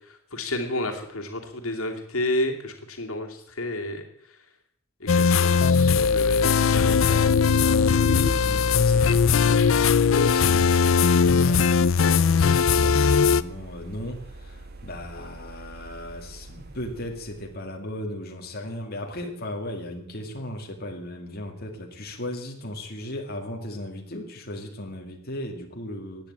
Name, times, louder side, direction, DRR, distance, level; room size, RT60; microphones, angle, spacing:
voice 1, 0.1-4.0 5.0-7.3, left 1 dB, 85° left, 3 dB, 2.6 m, -31 dB
sound 1, 5.1-13.4, left 5 dB, 65° left, 0.6 m, -19 dB
sound 2, 6.7-17.6, right 2 dB, 50° right, 2.0 m, -44 dB
voice 2, 8.0-26.3, left 1 dB, 45° left, 1 dB, 2.5 m, -37 dB
16.0 x 10.0 x 8.6 m, 0.70 s
head